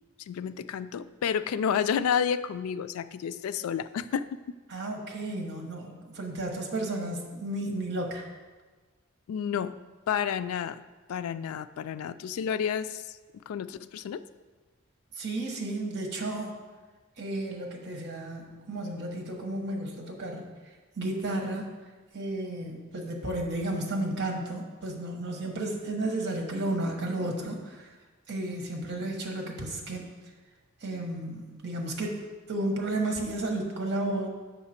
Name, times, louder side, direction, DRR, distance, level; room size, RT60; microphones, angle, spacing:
voice 1, 0.2-4.6 9.3-9.8 10.1-10.8 11.1-13.2 13.5-14.2, left 7 dB, 90° left, 14 dB, 0.3 m, -30 dB
voice 2, 4.7-8.2 15.2-16.6 17.2-20.5 21.0-21.7 22.1-27.9 28.3-30.1 30.8-32.2 32.5-34.3, right 1 dB, 55° right, 1 dB, 1.2 m, -33 dB
7.4 x 5.8 x 4.3 m, 1.3 s
head